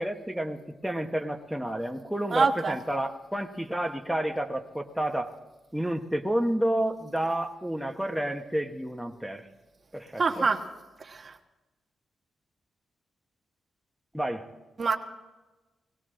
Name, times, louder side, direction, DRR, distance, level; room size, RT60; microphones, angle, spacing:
voice 1, 0.0-5.3 5.7-9.5 9.9-10.5 14.1-14.5, right 1 dB, 5° right, 2 dB, 1.1 m, -30 dB
voice 2, 2.3-2.7 10.2-10.6 11.1-11.3 14.8-15.0, right 4 dB, 45° right, 4 dB, 1.3 m, -25 dB
20.0 x 16.5 x 3.8 m, 1.1 s
cardioid pair, 80°, 0 cm